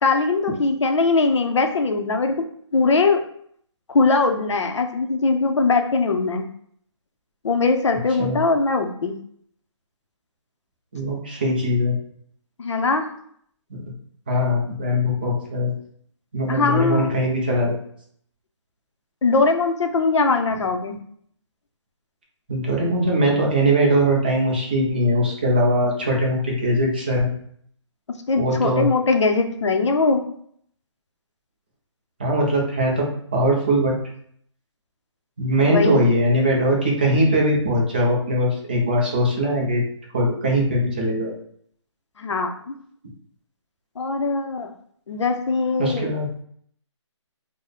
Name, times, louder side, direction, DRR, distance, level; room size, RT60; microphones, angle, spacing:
voice 1, 0.0-2.5 2.7-3.2 3.9-6.5 7.4-9.1 12.6-13.1 16.5-17.2 19.2-21.0 28.3-30.2 35.6-36.0 42.2-42.7 44.0-44.7 45.1-46.1, left 3 dB, 70° left, 5 dB, 0.6 m, -21 dB
voice 2, 10.9-11.9 13.7-13.8 14.3-15.7 16.3-17.8 22.5-27.3 28.4-28.9 32.2-33.1 33.3-33.9 35.4-39.8 40.1-41.3 45.8-46.3, equal, 20° right, -2 dB, 0.5 m, -21 dB
3.2 x 2.1 x 3.8 m, 0.64 s
hypercardioid pair, 175°, 16 cm